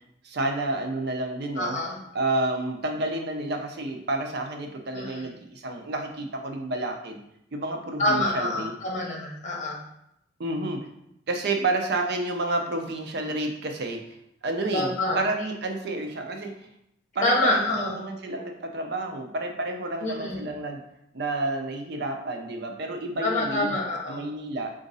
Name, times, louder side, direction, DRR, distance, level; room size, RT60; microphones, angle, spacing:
voice 1, 0.2-1.8 2.1-7.2 7.5-8.7 10.4-10.9 11.3-14.0 14.4-16.6 17.1-20.8 21.1-23.7 24.1-24.7, right 2 dB, 60° right, 4 dB, 0.6 m, -30 dB
voice 2, 1.6-1.9 4.9-5.3 8.0-9.8 14.6-15.2 17.2-17.9 20.0-20.4 23.2-24.2, left 1 dB, 40° left, -1 dB, 1.0 m, -26 dB
3.9 x 2.5 x 3.9 m, 0.77 s
head